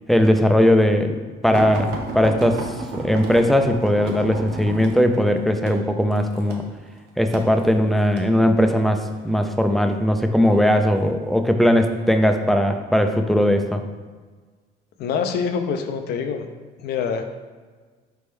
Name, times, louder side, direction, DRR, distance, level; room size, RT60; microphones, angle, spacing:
voice 1, 0.1-2.7 2.9-6.6 7.2-13.8, equal, ahead, 6 dB, 0.3 m, -19 dB
sound 1, 1.5-8.3 9.1-9.5 10.5-11.1 11.8-12.0 12.4-12.5, right 3 dB, 90° right, 0.6 m, -33 dB
voice 2, 15.0-16.5 16.8-17.2, left 6 dB, 70° left, 7 dB, 0.5 m, -25 dB
4.3 x 3.4 x 3.2 m, 1.4 s
cardioid pair, 110°, 17 cm